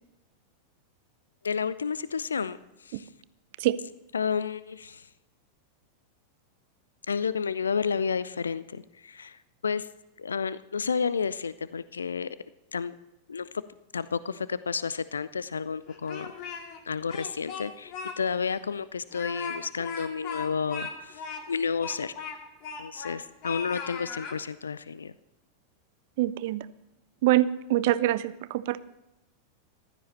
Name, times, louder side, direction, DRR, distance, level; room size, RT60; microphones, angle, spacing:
voice 1, 1.4-3.1 4.1-5.1 7.1-9.9 10.2-12.4 12.7-12.9 13.3-13.5 13.9-16.3 16.9-21.2 21.5-22.1 22.8-25.1, left 6 dB, 70° left, 17 dB, 0.4 m, -31 dB
Speech, 15.9-16.8 17.1-18.1 18.5-18.6 19.1-23.2 23.4-24.4, left 6 dB, 40° left, 2.1 m, -38 dB
voice 2, 26.2-26.7 27.2-28.8, right 15 dB, 50° right, 17 dB, 0.6 m, -25 dB
15.0 x 12.5 x 4.2 m, 0.95 s
figure-of-eight pair, 90°, 0 cm